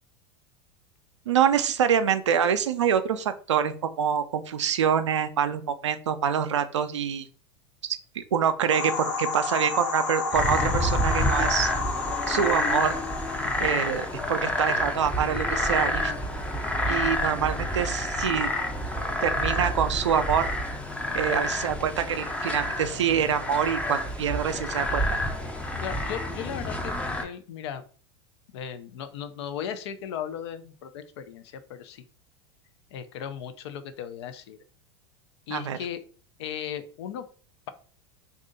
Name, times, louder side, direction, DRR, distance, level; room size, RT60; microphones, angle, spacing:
voice 1, 1.3-7.2 7.8-11.7 12.3-12.9 13.6-16.1 16.9-18.5 19.2-20.5 21.1-25.0 35.5-35.8, right 8 dB, 90° right, 10 dB, 0.4 m, -26 dB
sound 1, 8.7-14.4, left 4 dB, 90° left, 0.9 m, -31 dB
sound 2, 10.3-27.2, left 1 dB, 10° left, 0.5 m, -28 dB
voice 2, 25.8-26.9 27.2-27.8 28.5-32.0 32.9-34.6 35.5-36.0 36.4-37.3, left 9 dB, 70° left, 10 dB, 0.5 m, -36 dB
2.7 x 2.4 x 3.8 m, 0.42 s
hypercardioid pair, 95°, 15 cm